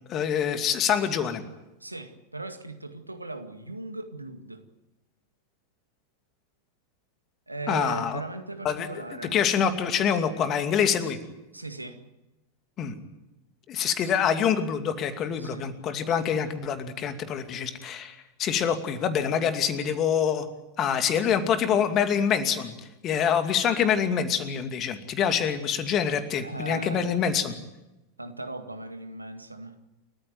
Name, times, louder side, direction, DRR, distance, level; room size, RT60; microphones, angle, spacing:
voice 1, 0.1-1.4 7.7-8.2 8.6-8.9 9.3-11.2 12.8-12.9 13.7-20.5 20.8-22.8 23.0-27.5, left 8 dB, 30° left, 8 dB, 2.5 m, -25 dB
voice 2, 1.8-4.6 7.5-9.4 11.5-12.0 15.4-15.7 26.4-27.2 28.2-29.8, right 3 dB, 85° right, 8 dB, 2.0 m, -38 dB
30.0 x 14.5 x 9.2 m, 0.99 s
figure-of-eight pair, 90°, 0 cm